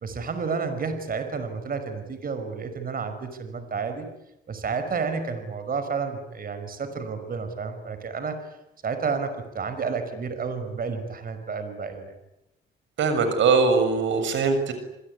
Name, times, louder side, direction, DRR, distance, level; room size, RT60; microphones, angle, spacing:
voice 1, 0.0-4.1 4.5-8.3 8.8-12.1, right 5 dB, 45° right, 8 dB, 5.4 m, -31 dB
voice 2, 13.0-14.7, right 4 dB, 75° right, 9 dB, 6.9 m, -21 dB
28.0 x 21.5 x 9.9 m, 0.87 s
cardioid pair, 90°, 20 cm